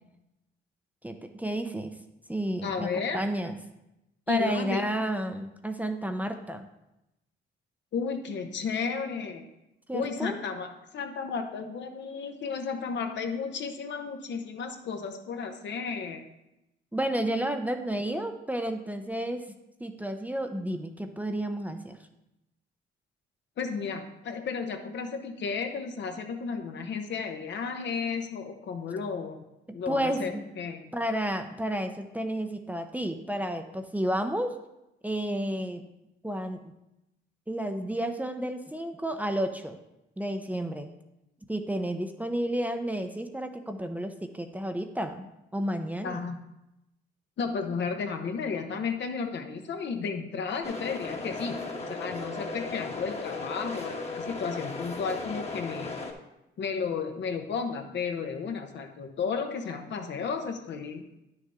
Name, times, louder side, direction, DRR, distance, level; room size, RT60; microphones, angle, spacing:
voice 1, 1.0-1.9 2.3-3.5 4.3-6.7 9.9-10.4 16.9-19.5 19.8-22.0 29.7-30.5 30.9-34.6 35.0-35.8 36.2-36.6 37.5-39.8 40.2-40.9 41.5-45.3 45.5-46.3, right 1 dB, 10° right, 6 dB, 0.7 m, -31 dB
voice 2, 2.6-3.2 4.3-4.8 7.9-9.4 9.9-16.2 23.6-29.4 29.7-30.9 46.0-46.4 47.4-51.6 51.9-55.9 56.6-61.0, left 5 dB, 65° left, 5 dB, 1.1 m, -33 dB
sound 1, 50.6-56.1, left 3 dB, 30° left, 1.3 m, -36 dB
10.0 x 6.5 x 3.7 m, 0.90 s
cardioid pair, 90°, 20 cm